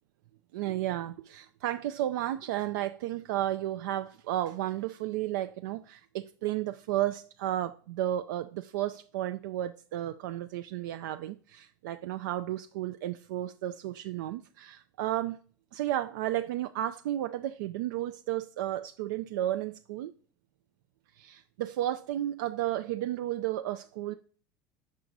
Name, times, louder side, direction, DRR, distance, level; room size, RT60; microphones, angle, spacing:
voice 1, 0.5-15.4 15.7-20.1 21.1-24.1, right 13 dB, 75° right, 0.3 m, -33 dB
6.6 x 4.6 x 3.9 m
hypercardioid pair, 80°, 10 cm